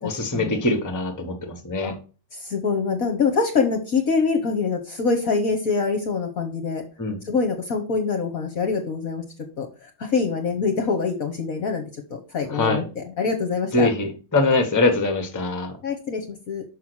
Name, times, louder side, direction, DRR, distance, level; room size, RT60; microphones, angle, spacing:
voice 1, 0.0-1.9 7.0-7.2 12.5-12.9 13.7-15.8, left 2 dB, 10° left, 6 dB, 1.1 m, -23 dB
voice 2, 2.4-6.8 7.3-9.2 9.6-9.7 10.0-11.8 12.1-13.9 15.8-16.6, left 4 dB, 50° left, 5 dB, 1.3 m, -24 dB
6.1 x 5.7 x 6.3 m, 0.36 s
omnidirectional pair, 2.2 m